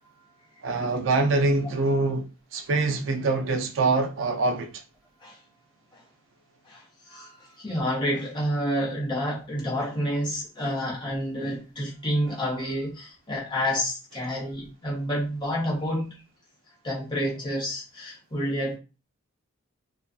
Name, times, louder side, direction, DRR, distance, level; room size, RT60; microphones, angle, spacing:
voice 1, 0.6-2.2 2.5-4.7, right 3 dB, 60° right, 0.4 m, -24 dB
voice 2, 6.6-16.2 16.8-18.8, equal, 20° left, 0.8 m, -29 dB
2.4 x 2.3 x 2.3 m
head